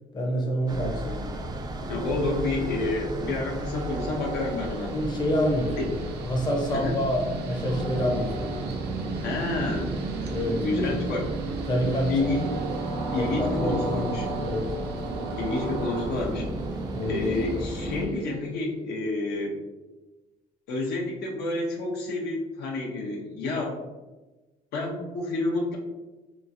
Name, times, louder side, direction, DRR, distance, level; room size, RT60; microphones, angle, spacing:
voice 1, 0.1-1.3 4.9-5.9 6.2-8.5 10.3-10.6 11.7-12.1 13.2-14.7 16.9-17.2, equal, 25° left, 0 dB, 0.6 m, -27 dB
sound 1, 0.7-18.1, right 2 dB, 25° right, 0.4 m, -33 dB
voice 2, 1.8-4.9 5.8-5.9 6.7-7.0 9.2-10.0 10.3-11.3 12.1-12.6 13.1-14.3 15.3-16.5 17.0-19.6 20.7-23.8 24.7-25.8, left 2 dB, 75° left, -1 dB, 0.6 m, -29 dB
Train, 1.8-18.5, right 3 dB, 75° right, 0.5 m, -39 dB
2.9 x 2.4 x 2.5 m, 1.2 s
cardioid pair, 110°, 17 cm